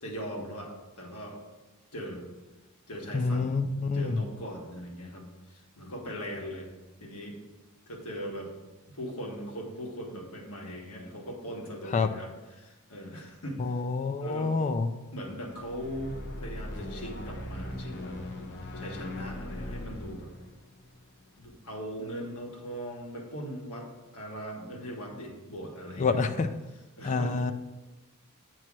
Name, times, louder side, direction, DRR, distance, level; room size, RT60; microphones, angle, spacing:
voice 1, 0.0-1.4 1.9-2.3 2.9-3.7 3.9-6.7 7.0-7.4 7.9-8.5 8.9-13.8 14.2-14.5 15.1-18.2 18.7-20.3 21.4-26.3 27.0-27.4, equal, 75° left, -1 dB, 1.5 m, -40 dB
voice 2, 3.1-4.2 11.9-12.1 13.6-14.9 26.0-26.5 27.0-27.5, left 4 dB, 35° left, 8 dB, 0.3 m, -27 dB
sound 1, 15.5-21.9, left 1 dB, 55° left, 0.9 m, -40 dB
8.4 x 3.1 x 6.0 m, 1.1 s
head